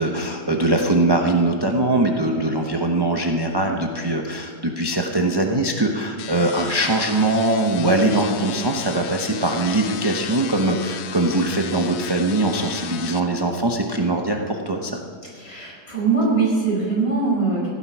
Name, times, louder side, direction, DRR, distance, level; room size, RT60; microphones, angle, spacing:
voice 1, 0.0-14.9, right 2 dB, 25° right, 2 dB, 0.5 m, -21 dB
sound 1, 6.2-13.2, left 9 dB, 80° left, 0.6 m, -35 dB
sound 2, 8.0-10.7, right 4 dB, 40° right, 1.1 m, -38 dB
voice 2, 15.3-17.7, right 4 dB, 35° left, -4 dB, 5.2 m, -22 dB
16.0 x 9.7 x 6.1 m, 2.1 s
omnidirectional pair, 1.8 m